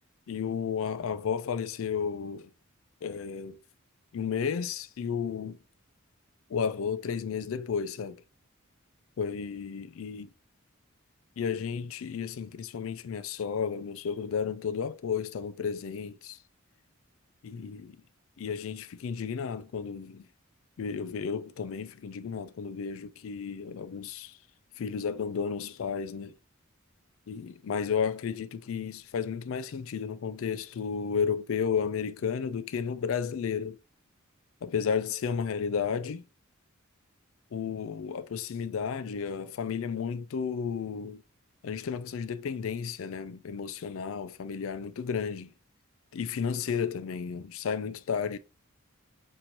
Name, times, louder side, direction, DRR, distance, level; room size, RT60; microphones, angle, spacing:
voice 1, 0.3-2.5 3.0-3.6 4.1-5.6 6.5-8.2 9.2-10.3 11.4-16.4 17.4-18.0 18.4-20.3 20.8-24.4 24.8-26.3 27.3-33.8 34.6-36.2 37.5-41.2 41.6-45.5 46.1-48.4, left 6 dB, 70° left, 0.4 m, -33 dB
6.0 x 2.6 x 2.9 m
head